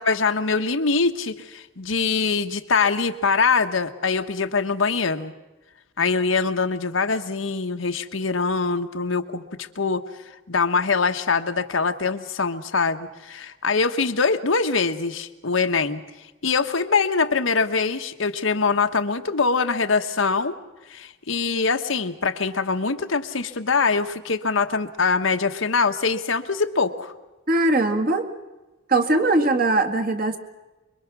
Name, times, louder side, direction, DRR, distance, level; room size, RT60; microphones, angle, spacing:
voice 1, 0.0-5.3 6.0-10.0 10.5-16.0 16.4-20.5 20.9-27.1, left 4 dB, 85° left, 6 dB, 1.3 m, -23 dB
voice 2, 27.5-28.3 28.9-30.4, right 2 dB, 45° right, 5 dB, 2.1 m, -20 dB
25.0 x 23.0 x 6.2 m, 1.1 s
head